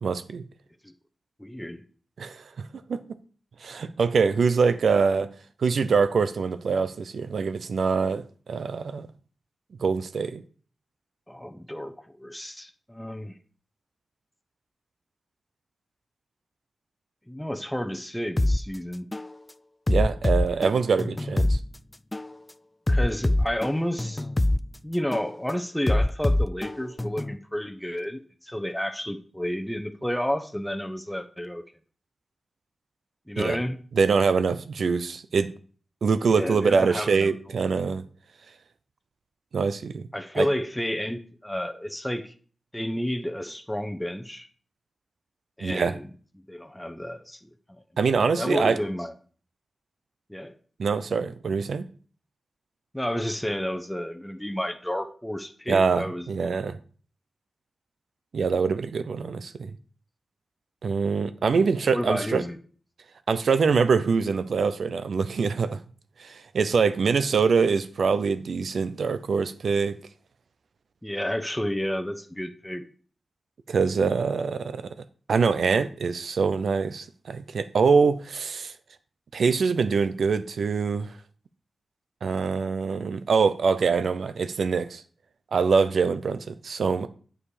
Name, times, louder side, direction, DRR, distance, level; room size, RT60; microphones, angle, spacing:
voice 1, 0.0-0.4 2.2-2.4 2.9-3.0 3.6-5.3 5.6-9.1 9.8-10.4 19.9-21.6 33.4-33.6 33.9-35.5 36.0-38.0 39.5-40.0 40.3-40.5 45.6-46.0 48.0-48.8 50.8-51.9 55.7-56.8 58.3-59.7 60.8-62.4 63.3-65.8 66.2-70.0 73.7-74.9 75.3-78.7 79.3-81.1 82.2-85.0 85.5-87.1, right 5 dB, 80° right, 0.6 m, -24 dB
voice 2, 1.4-1.8 11.3-13.3 17.3-19.1 22.9-24.3 24.8-31.6 33.3-33.8 36.2-37.6 40.1-42.3 42.7-44.5 45.6-46.1 46.5-47.8 48.4-49.1 50.3-50.5 52.9-56.7 61.5-62.6 71.0-72.8, equal, 5° left, 0.9 m, -31 dB
sound 1, 18.4-18.6 19.1-19.3 19.9-21.6 22.1-22.3 22.9-24.6 25.1-25.3 25.9-27.4, left 1 dB, 25° left, 0.3 m, -24 dB
8.6 x 5.0 x 4.9 m
cardioid pair, 55°, 0 cm